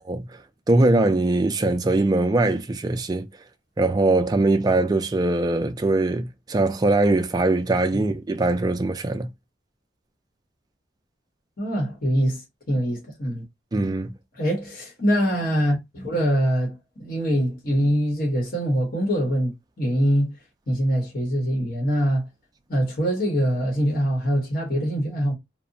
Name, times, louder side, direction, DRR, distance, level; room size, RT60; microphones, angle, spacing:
voice 1, 0.7-3.3 3.8-9.3 13.7-14.1, right 2 dB, 20° right, 0.3 m, -21 dB
voice 2, 11.6-12.4 12.7-13.4 14.4-20.4 20.7-22.3 22.7-25.3, equal, 50° left, 0.9 m, -23 dB
2.7 x 2.1 x 2.6 m
head